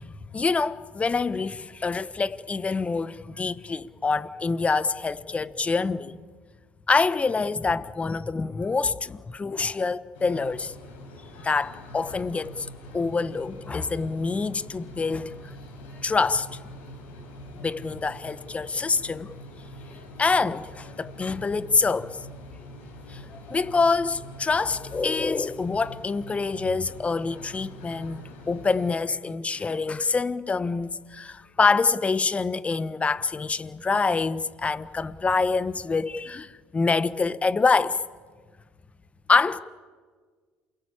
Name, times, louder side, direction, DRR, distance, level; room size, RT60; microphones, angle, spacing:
voice 1, 0.0-6.2 6.9-10.7 11.4-12.7 12.9-15.3 16.0-16.6 17.6-19.3 20.2-22.1 23.1-38.0 39.3-39.6, left 4 dB, 25° left, 1.2 m, -26 dB
sound 1, 10.1-28.9, left 1 dB, 85° left, 6.7 m, -44 dB
28.0 x 22.0 x 8.8 m
hypercardioid pair, 70°, 5 cm